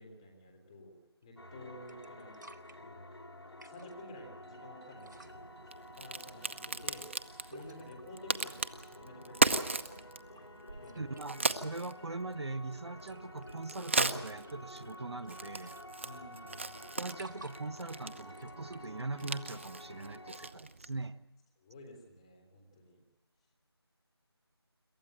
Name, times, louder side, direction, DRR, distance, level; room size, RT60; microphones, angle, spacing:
voice 1, 0.0-2.4 2.8-3.0 3.6-5.5 5.9-7.1 7.4-9.8 10.7-11.1 16.0-16.8 21.6-23.0, left 1 dB, 15° left, 3 dB, 3.3 m, -52 dB
sound 1, 1.2-1.5 1.9-2.8 3.4-4.0 4.9-5.4 7.5-8.1 9.5-10.0 10.4-11.5 13.0-13.5 13.8-14.5 14.9-15.0 15.2-16.4 16.8-17.8 18.2-19.7 20.7-20.8, right 2 dB, 45° right, 1.4 m, -55 dB
sound 2, 1.4-20.5, left 1 dB, 80° left, 5.2 m, -51 dB
Crack, 5.0-21.1, right 3 dB, 30° right, 0.8 m, -38 dB
voice 2, 11.0-15.8 16.8-21.2, right 3 dB, 80° right, 14 dB, 1.1 m, -41 dB
27.0 x 13.5 x 9.0 m, 1.0 s
figure-of-eight pair, 170°, 14 cm